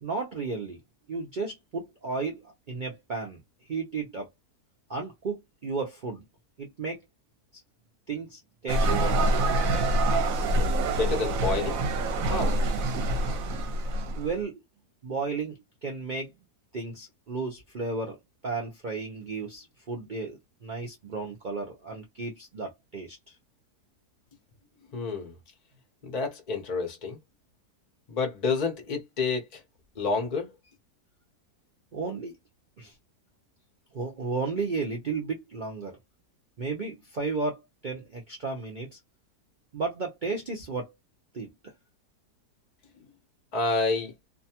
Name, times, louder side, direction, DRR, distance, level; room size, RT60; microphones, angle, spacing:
voice 1, 0.0-0.8 1.1-3.4 3.7-4.3 4.9-6.2 6.6-7.0 8.1-9.3 14.1-14.6 15.0-16.3 16.7-18.2 18.4-23.2 31.9-32.3 32.8-32.9 33.9-36.0 36.6-39.0 39.7-40.9 41.3-41.7, right 4 dB, 90° right, 0.4 m, -33 dB
sound 1, 8.7-14.3, right 1 dB, 65° right, 1.0 m, -26 dB
voice 2, 10.9-11.8 12.3-12.5 24.9-25.3 26.0-27.2 28.1-29.6 30.0-30.5 43.5-44.1, left 4 dB, 50° left, 0.5 m, -29 dB
2.7 x 2.2 x 2.8 m
omnidirectional pair, 1.8 m